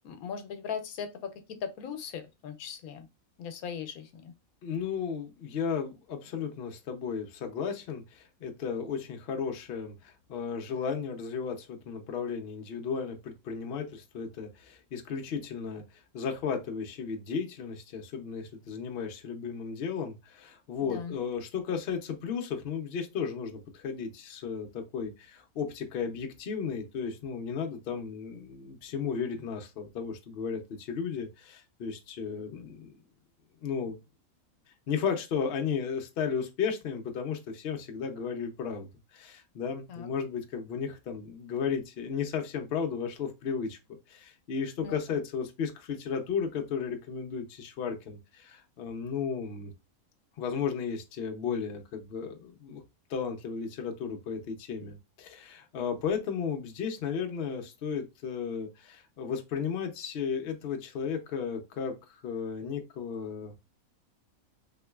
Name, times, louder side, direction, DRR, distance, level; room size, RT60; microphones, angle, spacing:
voice 1, 0.0-3.1 3.4-4.3 20.8-21.2 39.9-40.1 44.8-45.2, left 7 dB, 85° left, 1.1 m, -39 dB
voice 2, 4.6-15.8 16.1-32.9 33.6-34.0 34.9-38.9 39.1-43.8 44.1-49.7 50.4-52.8 53.1-63.6, left 6 dB, 55° left, 0.7 m, -34 dB
3.8 x 2.9 x 2.3 m
omnidirectional pair, 1.5 m